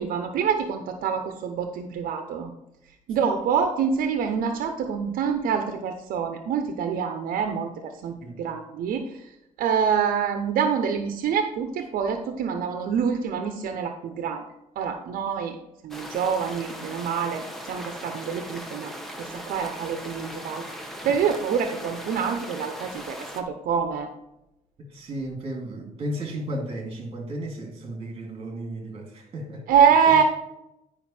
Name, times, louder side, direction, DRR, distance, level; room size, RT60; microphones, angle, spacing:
voice 1, 0.0-2.5 3.1-9.3 9.6-14.5 14.8-15.6 15.8-24.1 29.7-30.2, right 7 dB, 80° right, 6 dB, 0.8 m, -26 dB
sound 1, 15.9-23.4, equal, ahead, 1.0 m, -39 dB
voice 2, 24.9-29.7 30.1-30.2, right 1 dB, 40° right, 2 dB, 2.3 m, -34 dB
10.5 x 5.2 x 4.3 m, 0.88 s
cardioid pair, 145°, 15 cm